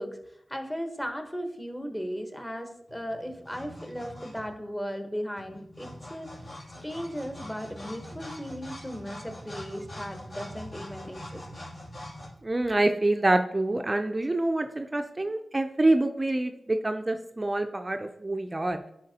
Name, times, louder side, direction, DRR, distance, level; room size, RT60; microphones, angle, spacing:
voice 1, 0.0-6.5 6.8-11.5, equal, 10° left, 5 dB, 1.0 m, -36 dB
sound 1, 2.9-4.6 5.4-12.3, left 1 dB, 60° left, 2.5 m, -43 dB
voice 2, 12.4-18.8, right 2 dB, 30° right, 7 dB, 0.4 m, -26 dB
10.5 x 4.2 x 2.8 m, 0.78 s
wide cardioid pair, 65°, 0 cm